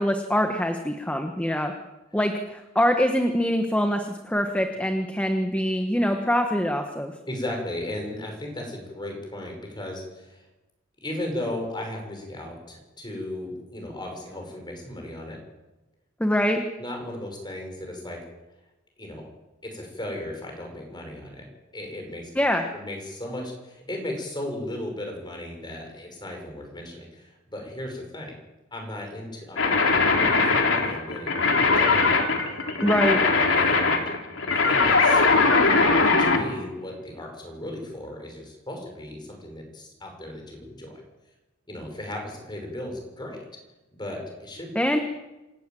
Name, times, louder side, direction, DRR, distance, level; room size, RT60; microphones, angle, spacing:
voice 1, 0.0-1.7 2.1-7.1 16.2-16.6 22.3-22.7 32.8-33.2 44.7-45.0, equal, 5° left, 5 dB, 1.3 m, -24 dB
voice 2, 7.3-10.5 11.0-15.4 16.8-18.2 19.0-19.2 19.6-21.5 21.7-22.3 22.7-28.3 28.7-32.2 32.5-32.9 33.5-34.0 34.5-35.2 36.0-41.0 41.7-43.4 43.9-44.7, left 1 dB, 25° left, 2 dB, 6.1 m, -36 dB
sound 1, 29.6-36.4, left 3 dB, 90° left, 3.0 m, -20 dB
27.0 x 12.5 x 9.2 m, 1.1 s
head